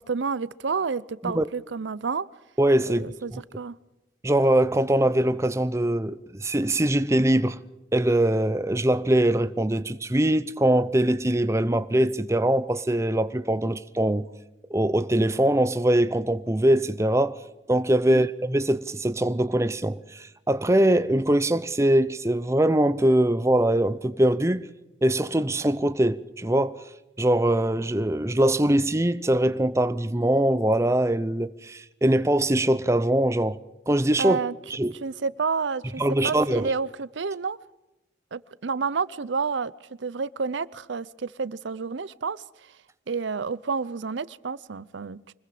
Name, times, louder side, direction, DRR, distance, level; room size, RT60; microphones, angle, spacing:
voice 1, 0.0-2.3 2.9-3.8 18.0-18.3 34.2-34.5 35.0-37.6 38.3-39.7 40.0-42.8 43.1-45.3, right 5 dB, 80° right, 0.6 m, -30 dB
voice 2, 2.6-3.4 4.2-7.6 7.9-14.2 14.7-17.4 17.7-24.7 25.0-26.8 27.2-33.6 33.9-34.4 34.7-34.9 36.0-36.7, right 1 dB, 15° right, 0.6 m, -22 dB
25.5 x 21.0 x 5.0 m
head